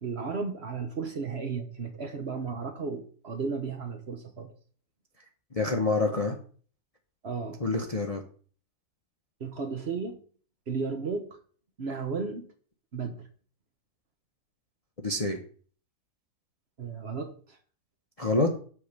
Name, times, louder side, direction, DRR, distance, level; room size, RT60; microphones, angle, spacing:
voice 1, 0.0-4.5 7.2-7.6 9.4-10.2 10.7-11.4 11.8-12.5 12.9-13.3 16.8-17.6, right 5 dB, 45° right, 6 dB, 1.1 m, -34 dB
voice 2, 5.5-6.4 7.6-8.2 15.0-15.4 18.2-18.5, left 2 dB, 30° left, 3 dB, 0.7 m, -26 dB
8.3 x 3.7 x 6.5 m, 0.44 s
omnidirectional pair, 1.7 m